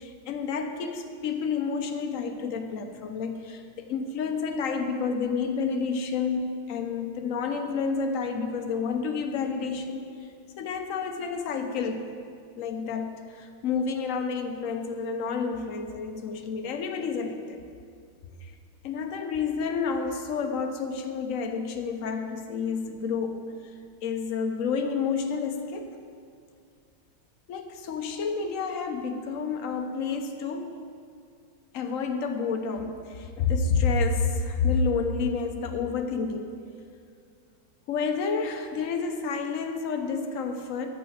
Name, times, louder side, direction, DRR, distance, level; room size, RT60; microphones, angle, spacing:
voice 1, 0.0-10.1 10.6-12.1 12.6-17.6 18.4-18.5 18.8-23.7 24.0-26.0 27.5-30.7 31.7-36.6 37.9-41.0, left 5 dB, 55° left, 5 dB, 0.9 m, -29 dB
9.0 x 6.9 x 7.4 m, 2.3 s
omnidirectional pair, 2.2 m